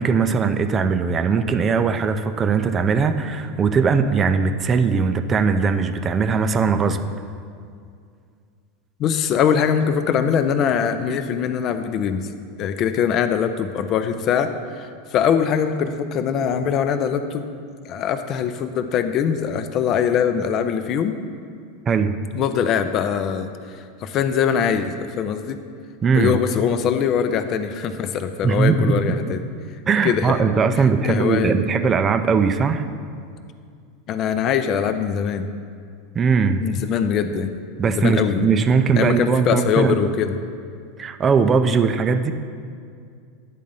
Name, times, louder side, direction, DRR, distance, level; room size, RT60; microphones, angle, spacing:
voice 1, 0.0-7.0 21.9-22.1 26.0-26.4 28.4-29.4 29.9-32.8 36.1-36.6 37.8-40.0 41.0-42.3, right 5 dB, 30° right, 9 dB, 0.5 m, -20 dB
voice 2, 9.0-12.3 12.6-14.5 14.8-17.5 17.8-21.2 22.3-25.6 26.1-29.4 30.0-30.4 31.0-31.6 34.1-35.5 36.6-37.5 38.0-38.6 39.0-40.4, left 7 dB, 45° left, 9 dB, 0.5 m, -22 dB
9.3 x 3.7 x 5.4 m, 2.3 s
hypercardioid pair, 85°, 0 cm